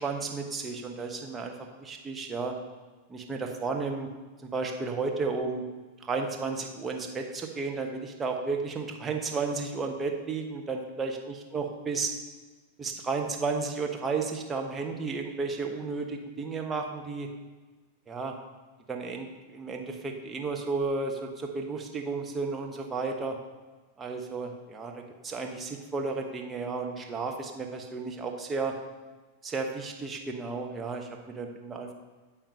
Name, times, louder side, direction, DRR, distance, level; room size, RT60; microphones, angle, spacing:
voice 1, 0.0-2.5 3.1-4.1 4.4-5.7 6.0-12.1 12.8-17.3 18.1-18.3 18.9-23.3 24.0-28.7 29.4-31.9, right 4 dB, 15° right, 2 dB, 1.0 m, -33 dB
8.9 x 3.8 x 5.5 m, 1.3 s
figure-of-eight pair, 90°, 0 cm